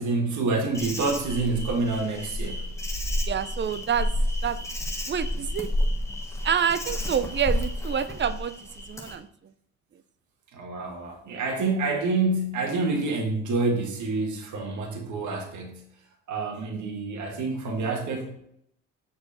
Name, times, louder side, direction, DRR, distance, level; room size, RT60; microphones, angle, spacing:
voice 1, 0.0-2.7 10.5-15.8 16.3-18.3, right 3 dB, 75° right, 1 dB, 1.7 m, -27 dB
Insect, 0.7-9.2, left 1 dB, 10° left, 1.3 m, -30 dB
voice 2, 3.3-4.1 4.4-4.6 5.1-5.7 6.4-8.5 8.9-9.3, right 8 dB, 40° right, 13 dB, 0.5 m, -27 dB
6.5 x 4.7 x 4.2 m, 0.74 s
cardioid pair, 90°, 30 cm